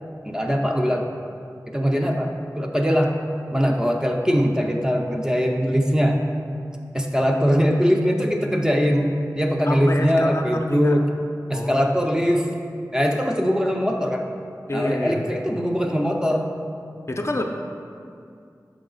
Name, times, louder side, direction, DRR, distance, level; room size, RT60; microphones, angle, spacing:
voice 1, 0.2-1.1 1.7-3.1 3.5-6.2 6.9-11.1 11.5-12.5 12.9-14.3 14.7-16.5, equal, 10° right, 2 dB, 0.5 m, -21 dB
voice 2, 9.6-11.0 11.5-11.9 14.7-15.2 17.1-17.4, left 1 dB, 40° left, 3 dB, 0.5 m, -27 dB
5.8 x 4.8 x 3.9 m, 2.4 s
wide cardioid pair, 45°, 7 cm